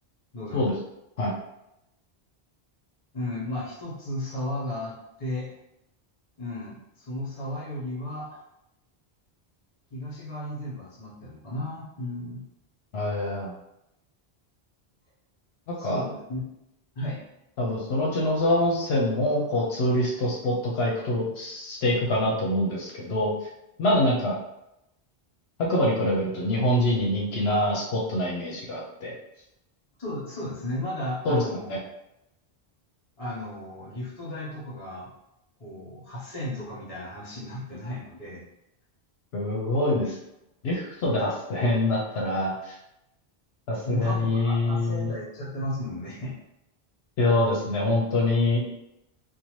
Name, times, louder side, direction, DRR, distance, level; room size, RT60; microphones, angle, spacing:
voice 1, 0.3-0.7 3.1-5.5 6.4-8.4 9.9-12.4 15.8-16.4 16.9-17.2 30.0-31.8 33.2-35.1 35.6-38.4 39.9-40.0 43.8-46.4, left 1 dB, 35° left, -5 dB, 1.0 m, -34 dB
voice 2, 12.9-13.5 15.8-16.0 17.6-23.3 23.8-24.4 25.6-29.2 31.2-31.4 31.7-31.8 39.3-40.1 40.6-42.8 43.7-45.1 47.2-48.8, left 1 dB, 75° left, -3 dB, 0.8 m, -25 dB
2.7 x 2.2 x 3.0 m, 0.85 s
omnidirectional pair, 1.1 m